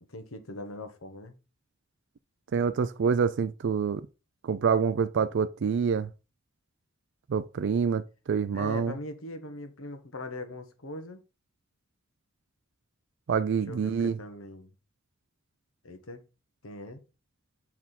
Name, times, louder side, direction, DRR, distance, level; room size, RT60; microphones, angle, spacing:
voice 1, 0.1-1.4 8.5-11.2 13.7-14.7 15.8-16.2 16.6-17.0, left 2 dB, 80° left, 1.3 m, -41 dB
voice 2, 2.5-4.0 4.4-6.1 7.3-8.9 13.3-14.2, right 6 dB, 60° right, 0.4 m, -26 dB
7.2 x 4.4 x 4.1 m
head